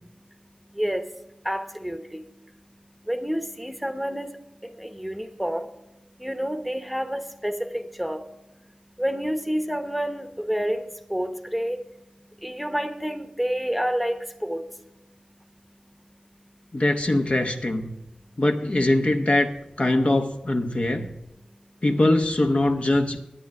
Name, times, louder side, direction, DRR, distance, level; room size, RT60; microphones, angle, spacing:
voice 1, 1.5-2.0 3.1-4.3 5.0-5.6 6.2-8.2 9.0-10.8 11.1-11.8 12.4-14.6, equal, ahead, 7 dB, 0.9 m, -28 dB
voice 2, 16.7-18.0 18.4-19.5 19.8-21.2 21.8-23.2, left 1 dB, 50° left, 5 dB, 0.9 m, -22 dB
10.0 x 9.6 x 5.9 m, 0.91 s
wide cardioid pair, 80°, 3 cm